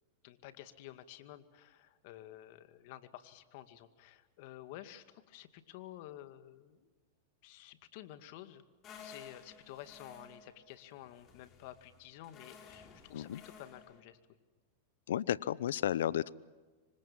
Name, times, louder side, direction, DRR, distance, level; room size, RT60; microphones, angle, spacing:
voice 1, 0.2-6.9 7.4-8.6 9.0-14.2, left 13 dB, 60° left, 10 dB, 2.2 m, -51 dB
sound 1, 8.8-14.0, left 5 dB, 35° left, 4.9 m, -55 dB
voice 2, 15.1-16.3, left 11 dB, 80° left, 20 dB, 0.8 m, -33 dB
27.0 x 25.0 x 7.4 m, 1.3 s
hypercardioid pair, 120°, 0 cm